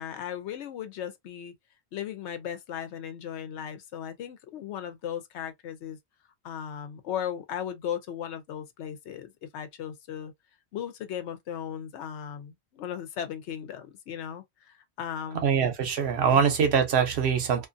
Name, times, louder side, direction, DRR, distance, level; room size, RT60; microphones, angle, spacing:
voice 1, 0.0-1.5 1.9-6.0 6.4-10.3 10.7-15.5 16.2-16.4, left 9 dB, 90° left, 0.9 m, -37 dB
voice 2, 15.4-17.7, right 7 dB, 70° right, 1.0 m, -23 dB
2.5 x 2.5 x 2.5 m
omnidirectional pair, 1.1 m